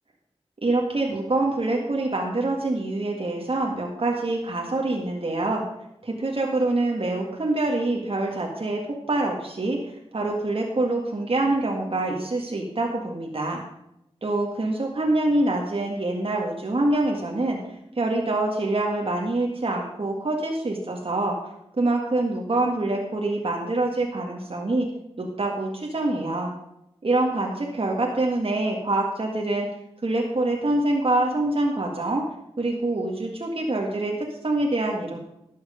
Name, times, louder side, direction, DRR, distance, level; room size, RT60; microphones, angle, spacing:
voice 1, 0.6-5.6 6.0-8.8 9.1-13.6 14.2-17.6 18.0-21.4 21.8-24.9 25.2-26.5 27.0-29.7 30.0-32.2 32.6-35.2, right 2 dB, 60° right, 0 dB, 1.9 m, -25 dB
12.0 x 7.9 x 5.1 m, 0.82 s
cardioid pair, 45°, 11 cm